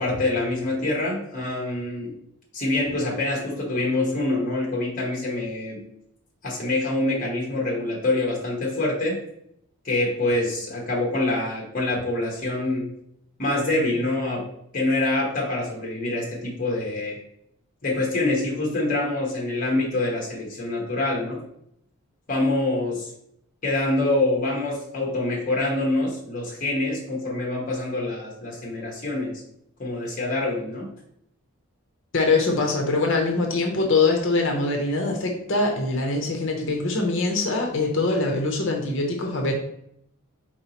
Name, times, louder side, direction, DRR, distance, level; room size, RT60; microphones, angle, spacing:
voice 1, 0.0-2.1 2.5-5.8 6.4-9.2 9.8-12.9 13.4-14.4 14.7-17.2 17.8-21.4 22.3-23.1 23.6-29.4 29.8-30.9, left 2 dB, 35° left, -2 dB, 1.0 m, -25 dB
voice 2, 32.1-39.5, left 3 dB, 55° left, 2 dB, 0.7 m, -23 dB
4.6 x 3.8 x 2.8 m, 0.74 s
head